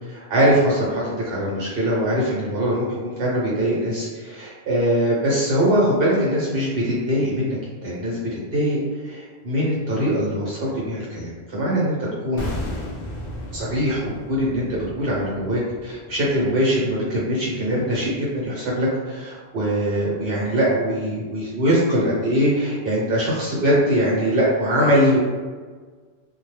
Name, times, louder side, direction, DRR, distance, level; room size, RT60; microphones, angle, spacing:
voice 1, 0.1-8.8 9.0-12.0 12.2-12.5 13.5-25.2, equal, 65° right, -6 dB, 1.1 m, -22 dB
sound 1, 12.4-17.4 17.6-17.8, left 1 dB, 55° left, 0.3 m, -35 dB
2.3 x 2.2 x 3.1 m, 1.5 s
omnidirectional pair, 1.1 m